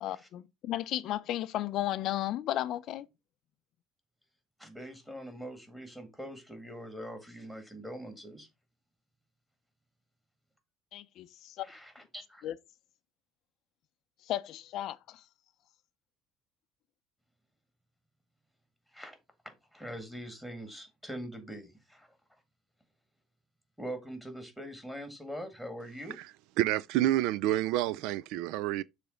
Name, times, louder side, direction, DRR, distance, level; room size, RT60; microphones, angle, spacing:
voice 1, 0.0-3.1 10.9-11.7 12.4-12.5 14.2-15.2, left 13 dB, 55° left, 0.5 m, -34 dB
voice 2, 4.6-8.5 11.6-12.4 18.9-19.2 19.7-22.2 23.8-26.2, equal, ahead, 1.9 m, -43 dB
voice 3, 26.6-28.8, right 14 dB, 75° right, 0.3 m, -28 dB
6.9 x 3.2 x 5.1 m
cardioid pair, 130°, 0 cm